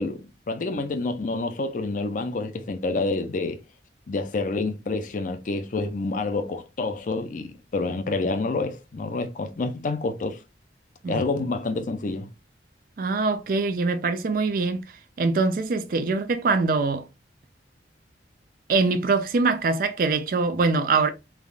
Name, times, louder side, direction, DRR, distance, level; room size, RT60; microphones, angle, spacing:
voice 1, 0.0-3.6 4.1-10.4 11.1-12.3, left 3 dB, 45° left, 0.4 m, -28 dB
voice 2, 13.0-14.8 15.2-17.0 18.7-21.1, right 4 dB, 50° right, 0.4 m, -23 dB
3.4 x 2.3 x 2.4 m
head